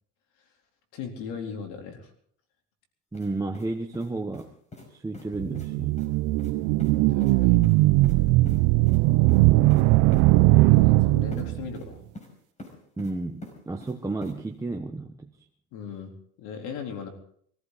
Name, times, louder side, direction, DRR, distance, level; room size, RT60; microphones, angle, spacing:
voice 1, 0.9-2.1 7.1-7.6 10.6-12.0 15.7-16.1 16.4-17.1, left 6 dB, 80° left, 3 dB, 3.7 m, -38 dB
sound 1, 3.1-3.3 3.5-4.5 4.7-4.9 5.1-5.3 5.5-5.7 6.0-6.1 6.4-6.5 6.8-6.9 7.2-7.3 7.6-8.2 8.5-8.6 8.9-9.0 9.3-9.4 9.7-9.8 10.1-10.2 11.3-11.4 11.7-12.3 12.6-13.1 13.4-13.9 14.2-14.3, left 1 dB, 25° left, 5.3 m, -43 dB
voice 2, 3.1-4.5 4.9-5.9 13.0-15.1, right 2 dB, 10° right, 2 dB, 1.1 m, -32 dB
sound 2, 5.4-11.7, right 19 dB, 80° right, 0.6 m, -20 dB
24.0 x 14.5 x 4.1 m, 0.63 s
cardioid pair, 115°, 30 cm